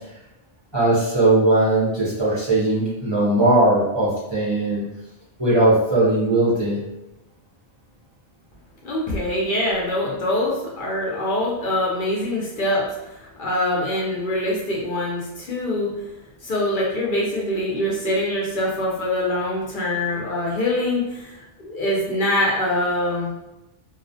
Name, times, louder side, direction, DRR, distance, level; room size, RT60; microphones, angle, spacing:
voice 1, 0.7-4.8 5.4-6.8, right 2 dB, 30° right, -8 dB, 0.6 m, -19 dB
voice 2, 8.8-15.9 16.4-23.5, left 1 dB, 60° left, -4 dB, 0.7 m, -24 dB
2.4 x 2.0 x 2.6 m, 0.94 s
omnidirectional pair, 1.0 m